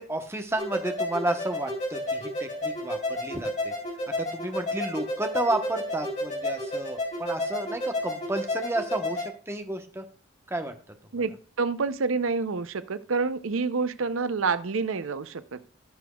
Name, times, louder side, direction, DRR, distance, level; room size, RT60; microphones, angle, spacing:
voice 1, 0.0-3.7 4.2-10.0 10.5-10.7, right 1 dB, 15° right, 5 dB, 1.0 m, -31 dB
sound 1, 0.6-9.3, left 1 dB, 35° left, 3.8 m, -31 dB
voice 2, 11.6-15.6, right 4 dB, 85° right, 13 dB, 0.6 m, -28 dB
17.0 x 6.1 x 2.3 m, 0.41 s
head